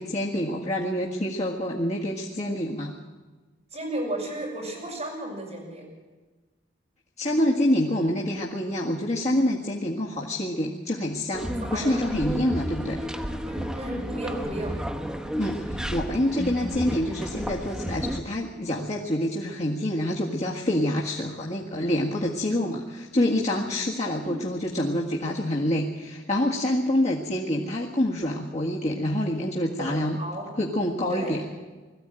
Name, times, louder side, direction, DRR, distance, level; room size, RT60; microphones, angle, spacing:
voice 1, 0.0-2.9 7.2-13.0 15.4-30.2 30.6-31.4, left 1 dB, 35° left, -4 dB, 1.8 m, -27 dB
voice 2, 3.7-5.8 11.6-12.1 13.4-14.7 24.2-24.3 29.8-29.9 30.2-30.5 31.1-31.4, right 1 dB, 35° right, -2 dB, 6.8 m, -34 dB
sound 1, 11.3-18.2, equal, 5° right, 1.2 m, -32 dB
20.5 x 14.5 x 9.0 m, 1.3 s
head